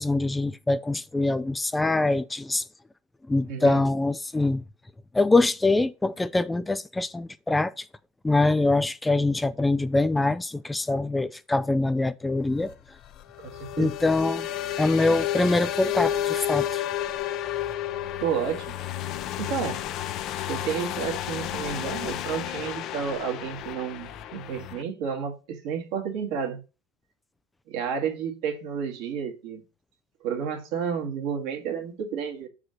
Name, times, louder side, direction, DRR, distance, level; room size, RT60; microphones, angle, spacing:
voice 1, 0.0-2.7 3.3-4.6 5.1-7.9 8.2-12.7 13.8-14.5 14.8-16.8, left 2 dB, 10° left, 0.3 m, -24 dB
voice 2, 3.5-3.8 13.4-13.9 18.2-18.8 19.4-19.8 20.5-26.6 27.7-29.6 30.2-32.5, right 7 dB, 70° right, 2.0 m, -31 dB
sound 1, 12.4-24.8, left 12 dB, 50° left, 0.6 m, -31 dB
6.5 x 4.9 x 5.8 m
supercardioid pair, 125°, 0 cm